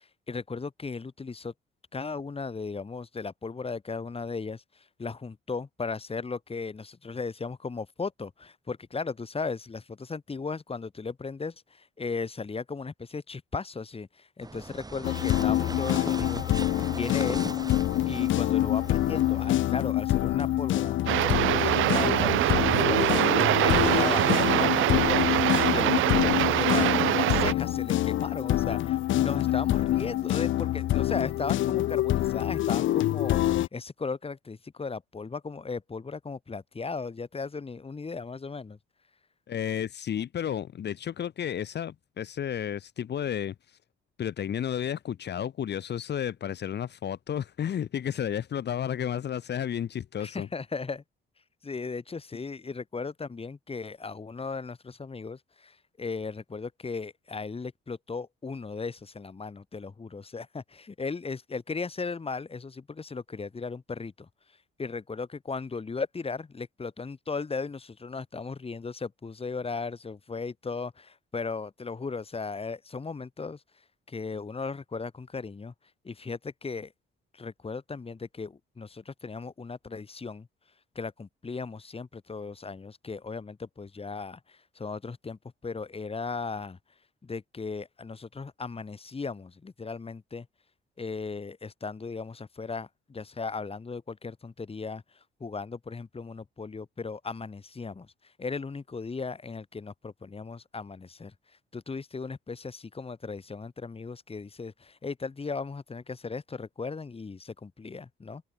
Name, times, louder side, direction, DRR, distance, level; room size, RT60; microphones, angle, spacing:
voice 1, 0.0-1.5 1.9-17.5 18.1-38.8 50.2-51.0 51.6-64.3 64.8-73.6 74.1-75.7 76.0-76.9 77.3-80.5 80.9-86.8 87.2-90.5 91.0-95.0 95.4-98.1 98.4-101.3 101.7-108.4, left 4 dB, 30° left, 4.1 m, -36 dB
sound 1, 14.4-19.5, right 3 dB, 20° right, 3.5 m, -39 dB
sound 2, 15.0-33.7, left 14 dB, 75° left, 1.0 m, -26 dB
sound 3, 21.1-27.5, right 15 dB, 85° right, 1.2 m, -24 dB
voice 2, 39.5-43.8 44.2-50.5, left 9 dB, 60° left, 2.3 m, -32 dB
cardioid pair, 90°, 20 cm